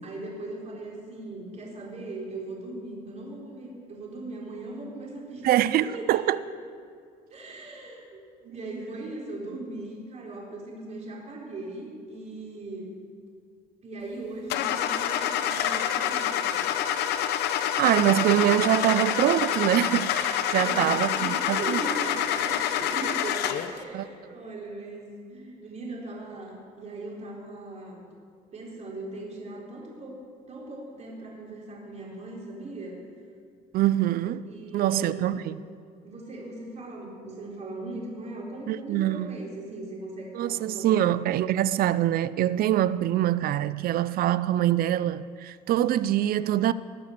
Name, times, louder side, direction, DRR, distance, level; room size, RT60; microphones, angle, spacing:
voice 1, 0.0-6.5 7.3-12.9 13.8-16.6 20.5-28.0 28.5-30.2 30.5-33.0 34.5-35.3 36.0-41.1, right 2 dB, 40° right, 4.1 m, -39 dB
voice 2, 5.4-6.4 17.8-21.8 23.9-24.0 33.7-34.5 34.7-35.6 38.7-39.4 40.3-46.7, right 12 dB, 60° right, 0.4 m, -24 dB
Car / Engine starting, 14.5-23.8, left 10 dB, 80° left, 0.8 m, -27 dB
19.5 x 6.8 x 6.6 m
cardioid pair, 110°, 17 cm